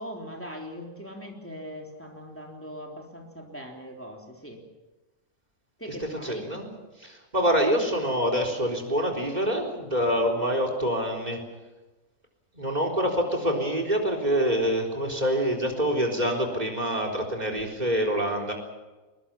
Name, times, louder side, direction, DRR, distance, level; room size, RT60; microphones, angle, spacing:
voice 1, 0.0-4.6 5.8-6.5, equal, 10° left, 0 dB, 3.5 m, -40 dB
voice 2, 6.2-6.7 7.0-11.4 12.5-18.5, equal, 30° right, 4 dB, 4.2 m, -26 dB
22.5 x 21.5 x 7.3 m, 1.2 s
omnidirectional pair, 1.4 m